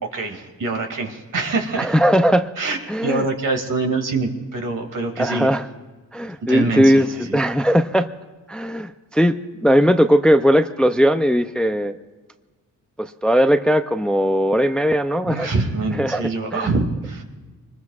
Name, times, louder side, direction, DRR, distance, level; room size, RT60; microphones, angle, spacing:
voice 1, 0.0-1.9 2.6-5.5 6.5-7.4 15.3-17.2, right 3 dB, 65° right, 3 dB, 2.4 m, -25 dB
voice 2, 1.8-2.5 2.9-3.2 5.2-5.7 6.1-8.1 8.5-9.4 9.6-12.0 13.0-15.5 16.0-16.2 16.5-16.7, equal, 5° left, 9 dB, 0.5 m, -18 dB
25.5 x 20.5 x 2.4 m, 1.3 s
cardioid pair, 105°, 34 cm